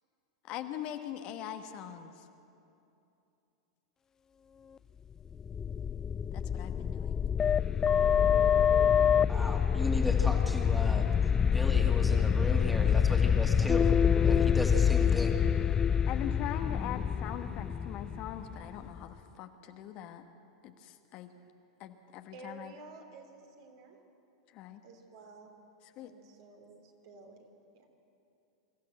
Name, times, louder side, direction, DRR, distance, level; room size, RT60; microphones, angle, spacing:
voice 1, 0.4-2.3 6.3-7.2 16.1-20.2 20.6-21.3 21.8-22.7 24.5-24.8 26.0-26.1, left 10 dB, 45° left, 7 dB, 1.2 m, -41 dB
sound 1, 5.3-19.0, left 7 dB, 20° left, 0.3 m, -26 dB
voice 2, 9.3-11.1 11.5-13.8 14.2-15.4, equal, ahead, 2 dB, 2.2 m, -36 dB
voice 3, 11.7-13.1 13.4-13.8 22.3-24.0 24.8-25.5 26.0-27.4 27.7-27.9, right 3 dB, 60° right, 2 dB, 3.2 m, -52 dB
24.0 x 14.0 x 7.8 m, 2.8 s
hypercardioid pair, 95°, 2 cm